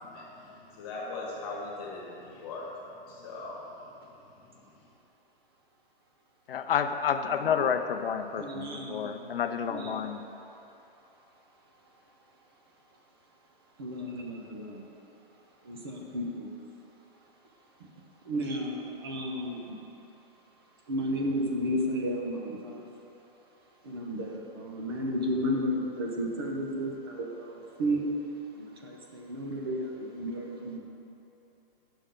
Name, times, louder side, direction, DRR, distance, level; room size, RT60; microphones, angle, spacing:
voice 1, 0.0-2.7 3.0-3.6, left 3 dB, 25° left, -5 dB, 1.6 m, -40 dB
voice 2, 6.5-10.2, left 7 dB, 70° left, 8 dB, 0.6 m, -29 dB
voice 3, 8.4-9.2 9.7-10.1 13.8-14.8 15.7-16.5 18.3-19.6 20.9-22.8 23.9-28.0 28.6-30.8, equal, 25° right, 1 dB, 0.6 m, -33 dB
9.0 x 6.9 x 3.7 m, 3.0 s
hypercardioid pair, 175°, 29 cm